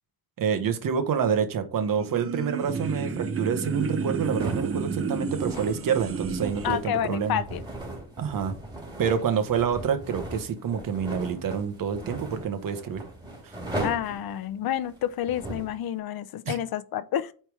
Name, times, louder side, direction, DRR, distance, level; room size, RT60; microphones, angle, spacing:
voice 1, 0.4-7.4 8.2-8.5 9.0-13.0 13.4-13.5 16.4-16.6, right 7 dB, 65° right, 1.2 m, -27 dB
sound 1, 1.8-6.7, right 5 dB, 40° right, 0.7 m, -31 dB
sound 2, 4.4-15.8, right 1 dB, 10° right, 2.4 m, -38 dB
voice 2, 6.6-7.6 13.8-17.3, left 10 dB, 85° left, 0.7 m, -29 dB
8.7 x 3.4 x 4.7 m
wide cardioid pair, 145°, 35 cm